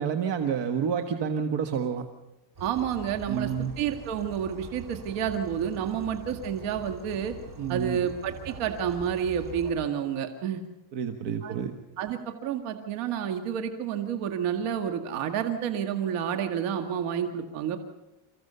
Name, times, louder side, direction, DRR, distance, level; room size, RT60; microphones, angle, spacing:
voice 1, 0.0-2.0 3.3-3.7 7.6-8.0 10.9-11.7, right 7 dB, 55° right, 6 dB, 1.6 m, -29 dB
sound 1, 2.6-9.7, right 3 dB, 40° right, 3.9 m, -44 dB
voice 2, 2.6-3.5 3.8-7.4 7.7-10.6 11.4-11.6 12.0-17.8, right 8 dB, 85° right, 6 dB, 2.0 m, -30 dB
28.5 x 15.5 x 6.9 m, 1.1 s
cardioid pair, 135°, 49 cm